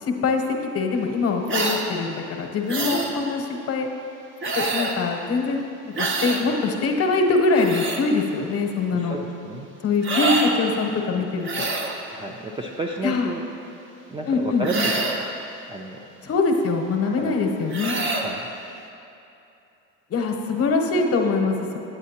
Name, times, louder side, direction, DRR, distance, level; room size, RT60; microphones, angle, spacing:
voice 1, 0.1-0.4 0.7-3.9 4.5-9.2 9.8-11.7 13.0-13.3 14.3-14.7 16.2-17.9 20.1-21.8, left 4 dB, 40° left, 3 dB, 0.9 m, -23 dB
sound 1, 1.5-1.9 2.7-3.1 4.4-5.0 6.0-6.4 7.4-8.0 10.0-10.5 11.4-12.0 14.6-15.3 17.7-18.3, right 3 dB, 30° right, 0.8 m, -26 dB
voice 2, 8.9-9.7 12.1-13.4 14.1-16.1 17.0-17.3 18.1-18.5, right 2 dB, 15° right, 0 dB, 0.3 m, -31 dB
8.6 x 8.2 x 2.8 m, 2.8 s
supercardioid pair, 90°, 38 cm